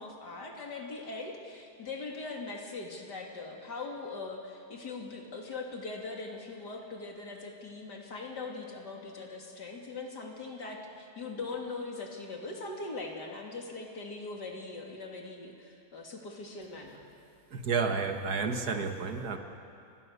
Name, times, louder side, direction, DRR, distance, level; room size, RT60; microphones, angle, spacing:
voice 1, 0.0-17.0, left 3 dB, 90° left, 1 dB, 3.4 m, -41 dB
voice 2, 17.5-19.4, right 5 dB, 70° right, 5 dB, 2.1 m, -31 dB
29.0 x 21.0 x 6.7 m, 2.6 s
omnidirectional pair, 1.7 m